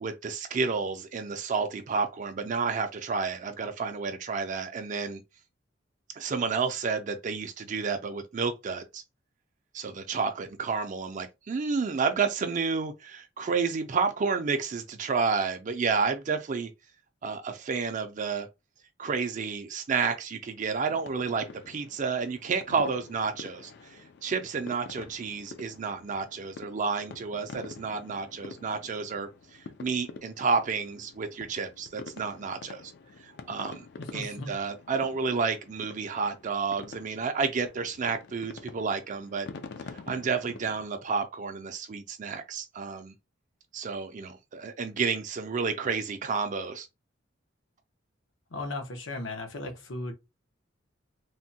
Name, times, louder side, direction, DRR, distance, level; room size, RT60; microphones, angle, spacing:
voice 1, 0.0-5.2 6.1-9.0 9.7-16.7 17.2-18.5 19.0-32.9 33.2-33.8 34.1-39.5 39.9-43.1 43.7-46.9, right 5 dB, 40° right, 0.4 m, -30 dB
sound 1, 20.9-40.8, left 4 dB, 60° left, 0.4 m, -47 dB
voice 2, 34.0-34.6 48.5-50.1, left 2 dB, 80° left, 0.8 m, -36 dB
3.4 x 2.2 x 2.7 m
head